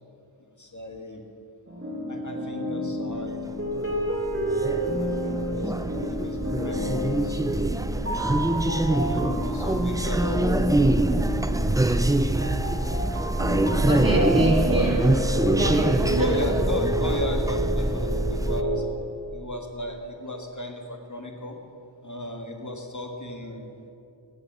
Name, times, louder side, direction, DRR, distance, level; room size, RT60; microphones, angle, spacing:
voice 1, 0.6-1.2 2.1-4.0 4.8-7.4 8.2-8.4 9.1-10.5 11.8-12.3 16.2-18.8 19.3-21.6 22.0-23.7, left 1 dB, 40° left, 3 dB, 1.7 m, -35 dB
sound 1, 1.7-18.8, equal, 30° right, 2.5 m, -30 dB
sound 2, 3.7-18.6, right 1 dB, 10° right, 0.4 m, -24 dB
voice 2, 13.8-15.1 15.6-16.4, right 1 dB, 45° right, -1 dB, 2.5 m, -26 dB
15.5 x 7.6 x 6.0 m, 2.7 s
wide cardioid pair, 40°, 47 cm